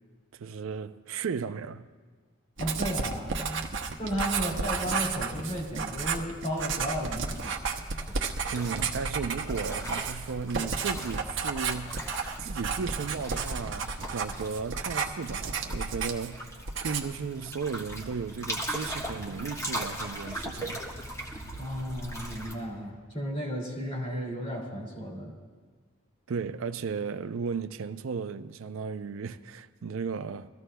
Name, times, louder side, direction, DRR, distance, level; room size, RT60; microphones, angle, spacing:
voice 1, 0.3-1.9 8.5-12.1 12.4-20.8 26.3-30.5, right 5 dB, 85° right, 0.4 m, -35 dB
voice 2, 2.6-3.6 4.0-7.6 21.6-25.3, equal, 35° left, 2.7 m, -34 dB
Writing, 2.6-16.4 16.7-17.2, right 5 dB, 65° right, 0.8 m, -32 dB
sound 1, 6.6-22.5, right 1 dB, 15° left, 1.2 m, -40 dB
22.0 x 14.5 x 2.2 m
head